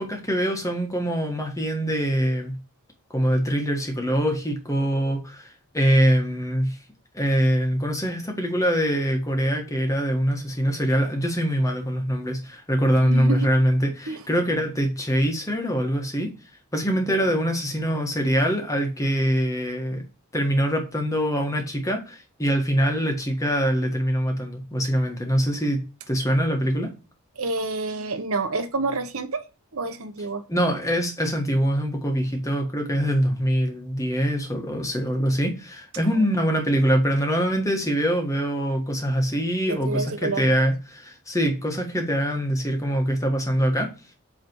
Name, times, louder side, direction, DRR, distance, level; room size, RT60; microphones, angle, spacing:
voice 1, 0.0-2.5 3.1-6.8 7.1-16.3 16.7-20.0 20.3-25.8 26.1-26.9 30.5-43.9, equal, 15° left, 1.4 m, -23 dB
voice 2, 13.0-13.5 14.1-14.2 27.4-29.4 29.7-30.4 36.1-36.3 39.7-40.4, right 3 dB, 70° right, 0.9 m, -28 dB
8.2 x 3.3 x 4.6 m
head